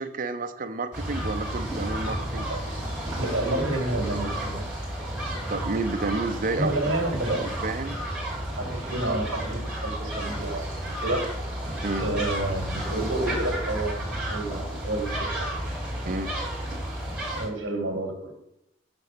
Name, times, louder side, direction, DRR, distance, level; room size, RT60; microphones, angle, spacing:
voice 1, 0.0-2.5 5.5-6.8 7.3-8.0 11.8-12.1 16.0-16.3, right 3 dB, 45° right, 8 dB, 0.6 m, -30 dB
sound 1, 0.9-17.5, right 1 dB, 5° right, 3.1 m, -32 dB
voice 2, 3.2-4.6 6.6-7.5 8.5-11.3 12.0-14.0 14.3-15.5 17.4-18.3, right 1 dB, 65° right, 1 dB, 1.8 m, -29 dB
6.9 x 4.0 x 5.8 m, 0.77 s
head